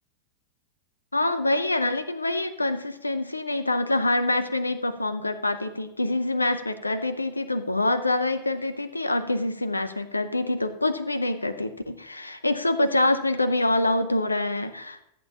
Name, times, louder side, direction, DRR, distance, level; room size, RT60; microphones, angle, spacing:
voice 1, 1.1-15.0, left 2 dB, 80° left, 12 dB, 0.6 m, -25 dB
13.5 x 8.3 x 2.9 m, 0.79 s
figure-of-eight pair, 90°, 0 cm